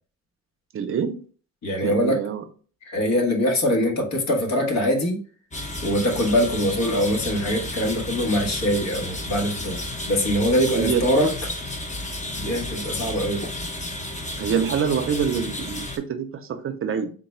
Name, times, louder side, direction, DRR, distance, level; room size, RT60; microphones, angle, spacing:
voice 1, 0.7-1.2 1.8-2.4 6.1-6.2 10.7-11.1 14.4-17.1, right 7 dB, 45° right, 0.6 m, -26 dB
voice 2, 1.6-2.2 2.8-5.2 5.8-9.8 10.1-11.3 12.4-13.5, equal, 65° left, 1.3 m, -23 dB
sound 1, 5.5-16.0, left 1 dB, 25° left, 0.8 m, -32 dB
3.9 x 2.2 x 4.2 m
cardioid pair, 90°, 30 cm